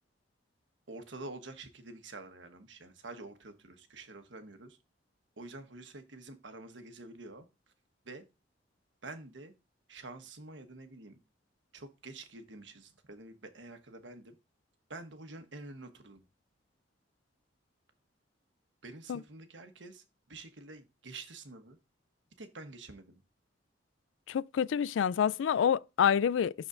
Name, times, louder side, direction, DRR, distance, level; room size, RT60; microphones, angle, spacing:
voice 1, 0.9-4.8 5.4-7.5 8.0-8.2 9.0-9.5 9.9-11.2 11.7-14.4 14.9-16.2 18.8-21.8 22.4-23.2, right 2 dB, 75° right, 1.3 m, -48 dB
voice 2, 24.3-26.5, left 8 dB, 90° left, 0.3 m, -27 dB
12.5 x 4.2 x 2.6 m
head